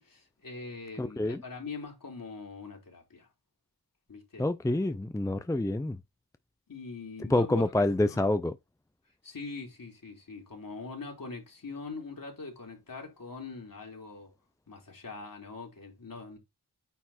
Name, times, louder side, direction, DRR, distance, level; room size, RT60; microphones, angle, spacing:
voice 1, 0.0-3.3 4.1-4.5 6.7-8.2 9.2-14.3 14.7-16.4, left 4 dB, 55° left, 3.8 m, -42 dB
voice 2, 1.0-1.4 4.4-6.0 7.3-8.5, left 1 dB, 10° left, 0.5 m, -27 dB
9.1 x 4.3 x 4.3 m
wide cardioid pair, 90°, 39 cm